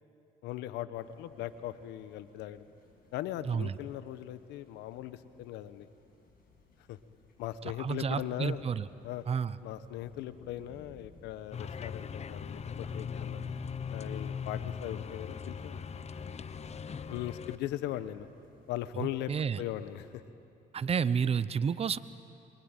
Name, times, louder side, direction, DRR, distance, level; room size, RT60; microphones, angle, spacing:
voice 1, 0.4-2.6 3.1-5.9 6.9-7.0 7.4-8.6 9.0-9.2 9.6-13.4 13.9-15.8 17.1-18.3 18.7-19.3 19.6-20.2, left 13 dB, 85° left, 13 dB, 1.2 m, -39 dB
sound 1, 0.9-20.2, left 4 dB, 55° left, 8.0 m, -59 dB
voice 2, 3.5-3.8 7.8-8.9 9.3-9.6 19.0-19.6 20.7-22.0, right 6 dB, 35° right, 15 dB, 0.8 m, -30 dB
sound 2, 11.5-17.6, left 6 dB, 40° left, 1.0 m, -39 dB
26.0 x 23.5 x 9.1 m, 2.7 s
supercardioid pair, 80°, 17 cm